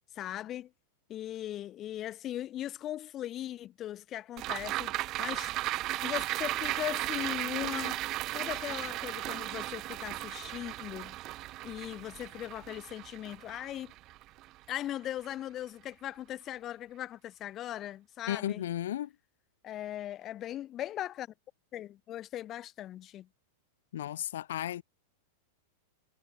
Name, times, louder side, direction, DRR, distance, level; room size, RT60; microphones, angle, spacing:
voice 1, 0.1-0.7 1.1-5.6 6.0-8.0 8.3-11.2 11.6-13.9 14.7-18.6 19.6-21.3 21.7-23.3, left 12 dB, 25° left, 6.5 m, -39 dB
sound 1, 4.4-14.9 15.2-15.3, right 17 dB, 30° right, 1.3 m, -36 dB
voice 2, 18.3-19.1 23.9-24.8, left 12 dB, 80° left, 3.9 m, -34 dB
supercardioid pair, 155°, 0 cm